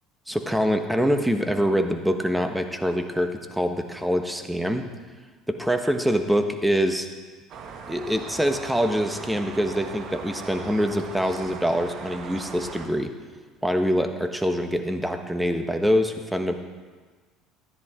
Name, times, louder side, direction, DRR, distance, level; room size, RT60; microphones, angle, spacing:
voice 1, 0.3-4.9 5.5-7.1 7.9-13.1 13.6-16.5, equal, 5° right, 6 dB, 1.2 m, -24 dB
sound 1, 7.5-12.9, right 5 dB, 55° right, 1.4 m, -39 dB
13.5 x 10.5 x 3.8 m, 1.4 s
hypercardioid pair, 70°, 0 cm